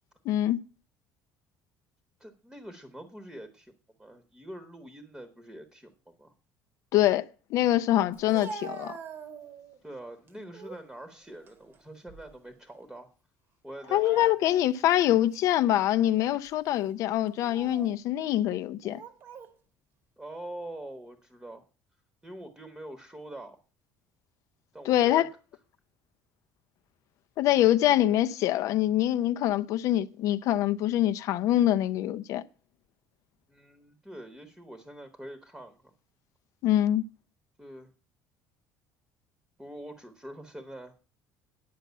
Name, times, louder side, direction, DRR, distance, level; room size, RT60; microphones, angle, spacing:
voice 1, 0.3-0.6 6.9-8.9 13.9-19.0 24.9-25.3 27.4-32.4 36.6-37.0, left 13 dB, 55° left, 0.5 m, -24 dB
voice 2, 2.2-3.7 4.0-6.3 9.8-13.1 13.6-14.3 20.2-21.6 22.2-23.6 24.7-25.3 33.5-35.9 37.6-37.9 39.6-40.9, right 1 dB, 5° right, 1.0 m, -44 dB
Speech, 8.1-9.8 10.3-10.9 11.3-12.5 12.8-13.0 13.8-14.8 15.3-15.5 16.2-16.5 17.3-18.0 18.8-19.5, right 5 dB, 35° right, 1.1 m, -44 dB
9.4 x 6.0 x 8.1 m
cardioid pair, 170°, 7 cm